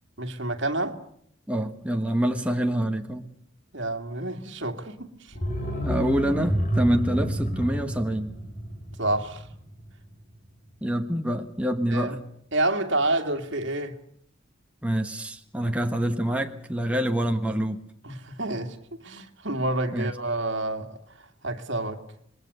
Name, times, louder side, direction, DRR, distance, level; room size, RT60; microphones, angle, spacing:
voice 1, 0.2-1.0 3.7-5.3 9.0-9.5 11.9-12.2 12.5-14.0 15.6-15.7 18.0-22.0, right 2 dB, 60° right, 2.3 m, -29 dB
voice 2, 1.5-3.2 5.8-8.3 10.8-12.2 14.8-17.8 19.9-20.1, right 1 dB, 5° right, 1.3 m, -26 dB
sound 1, 5.3-10.1 10.3-10.4, equal, 40° left, 5.8 m, -29 dB
27.0 x 21.0 x 6.8 m
head